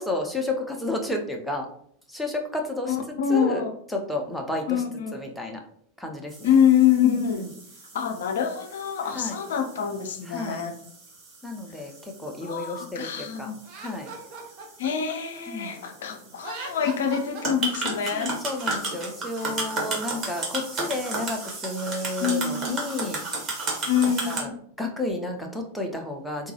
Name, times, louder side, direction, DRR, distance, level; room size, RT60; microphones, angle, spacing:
voice 1, 0.0-1.7 2.1-3.0 3.3-3.6 3.9-4.8 5.1-5.6 6.0-6.5 7.0-7.5 9.1-9.4 10.3-10.6 11.4-14.1 15.5-15.8 18.1-23.2 24.3-24.5 24.8-26.5, left 1 dB, 5° left, 1 dB, 0.6 m, -31 dB
voice 2, 2.9-3.7 4.7-5.2 6.4-7.5 7.9-10.7 12.4-13.6 14.8-18.4 22.2-22.9 23.9-24.6, left 8 dB, 60° left, 6 dB, 0.5 m, -25 dB
sound 1, 6.3-24.4, right 2 dB, 30° right, 1.2 m, -35 dB
Laughter, 13.6-15.9 16.3-18.2, right 4 dB, 45° right, 0.6 m, -40 dB
3.6 x 2.2 x 2.7 m, 0.66 s
figure-of-eight pair, 90°, 0 cm